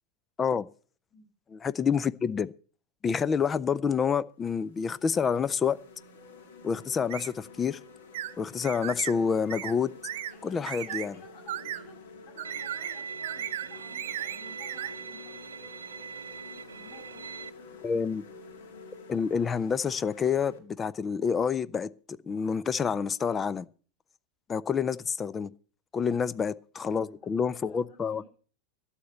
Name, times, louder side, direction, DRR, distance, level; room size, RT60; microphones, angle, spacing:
voice 1, 1.5-2.5 3.0-5.8 6.6-7.8 8.4-9.9 10.4-11.1 17.8-18.2 19.1-23.7 24.5-25.5 25.9-28.2, left 6 dB, 20° left, 0.5 m, -28 dB
sound 1, 3.8-3.9 4.4-20.6, left 4 dB, 60° left, 2.0 m, -49 dB
sound 2, 7.1-7.3 8.1-8.3 8.6-9.1 9.5-9.7 10.0-10.3 10.6-11.1 11.5-11.8 12.4-13.0 13.2-13.7 13.9-14.9, right 12 dB, 60° right, 0.9 m, -36 dB
voice 2, 10.3-15.3 16.7-17.3 17.8-17.9 26.1-26.2 26.7-28.3, left 2 dB, 45° left, 7.2 m, -54 dB
Bowed string instrument, 12.4-17.5, right 6 dB, 75° right, 0.5 m, -41 dB
13.0 x 7.4 x 8.0 m
figure-of-eight pair, 90°, 0 cm